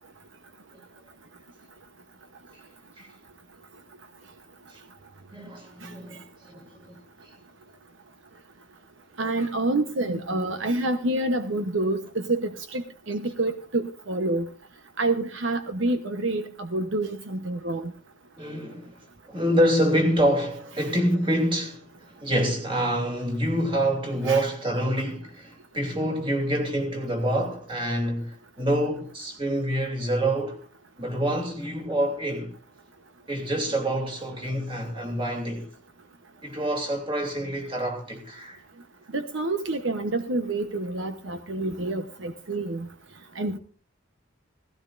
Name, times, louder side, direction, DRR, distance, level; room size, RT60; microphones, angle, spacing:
voice 1, 5.3-7.0 10.0-10.4 18.4-30.6 31.0-32.5 33.3-35.7 36.4-38.6, right 1 dB, 25° right, 2.9 m, -27 dB
voice 2, 9.2-14.5 15.0-17.9 24.3-24.4 39.1-42.9 43.4-43.6, right 2 dB, 70° right, 1.0 m, -28 dB
17.5 x 16.0 x 2.6 m
head